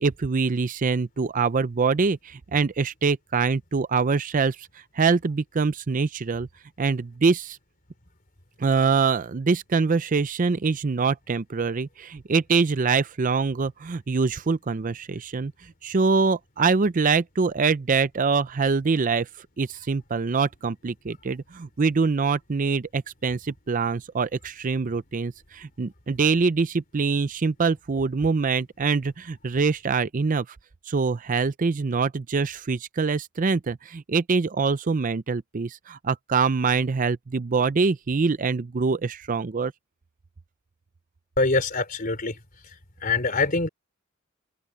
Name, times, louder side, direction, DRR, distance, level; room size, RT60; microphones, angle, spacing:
voice 1, 0.0-4.7 4.9-6.5 6.8-7.6 8.6-15.5 15.8-19.3 19.6-30.5 30.9-39.7, right 4 dB, 40° right, 0.5 m, -24 dB
voice 2, 41.4-42.4 43.0-43.7, left 3 dB, 40° left, 3.8 m, -24 dB
head